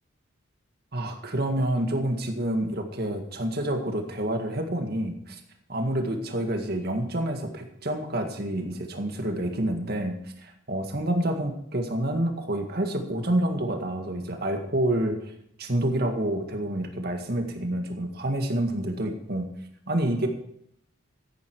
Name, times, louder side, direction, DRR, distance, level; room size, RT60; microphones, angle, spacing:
voice 1, 0.9-5.4 5.7-10.2 10.4-15.3 15.6-19.5 19.9-20.3, right 1 dB, 50° right, 5 dB, 1.9 m, -28 dB
14.5 x 10.0 x 4.7 m, 0.72 s
head